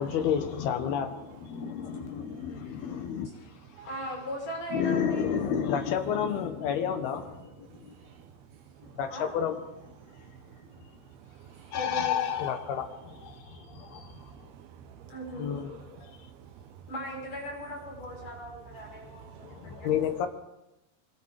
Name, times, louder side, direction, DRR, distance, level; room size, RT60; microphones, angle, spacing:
voice 1, 0.0-3.3 4.7-7.9 8.8-10.0 11.7-14.4 15.3-16.2 19.4-20.3, left 8 dB, 85° left, 3.5 m, -31 dB
voice 2, 2.2-4.0 7.6-9.0 10.0-11.8 13.3-16.9 18.0-18.3 18.7-19.9, right 9 dB, 85° right, 3.0 m, -52 dB
voice 3, 3.8-5.2 9.1-9.3 11.7-12.2 15.1-15.5 16.9-19.9, equal, 55° left, 7.7 m, -38 dB
25.0 x 23.5 x 5.0 m
omnidirectional pair, 4.4 m